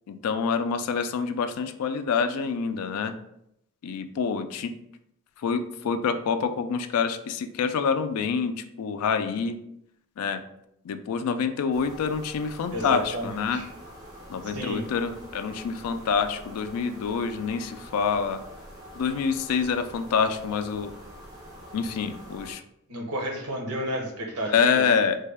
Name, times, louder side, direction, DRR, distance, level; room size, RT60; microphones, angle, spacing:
voice 1, 0.1-3.2 3.8-4.7 5.4-9.6 10.2-10.4 10.8-13.6 14.3-18.4 18.9-20.9 21.7-22.6 24.5-25.3, left 6 dB, 90° left, 9 dB, 0.3 m, -27 dB
sound 1, 11.7-22.5, equal, 20° right, 0.7 m, -45 dB
voice 2, 12.7-13.7 14.4-14.8 22.9-24.8, equal, 90° right, 1 dB, 0.8 m, -32 dB
3.2 x 2.2 x 3.3 m, 0.77 s
head